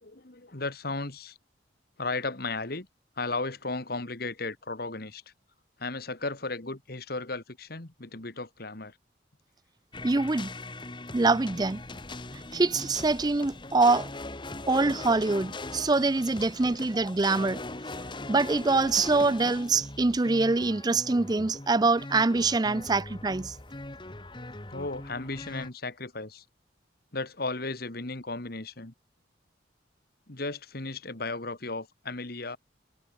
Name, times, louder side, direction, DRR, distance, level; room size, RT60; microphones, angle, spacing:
voice 1, 0.0-1.4 2.0-2.9 3.2-5.2 5.8-9.0 16.7-16.8 24.3-26.4 27.1-28.9 30.3-32.6, left 3 dB, 55° left, 1.9 m, -35 dB
sound 1, 9.9-25.7, left 2 dB, 25° left, 1.5 m, -40 dB
voice 2, 10.0-10.5 11.1-11.8 12.5-14.1 14.7-17.6 18.3-23.5, right 3 dB, 20° right, 0.4 m, -24 dB
head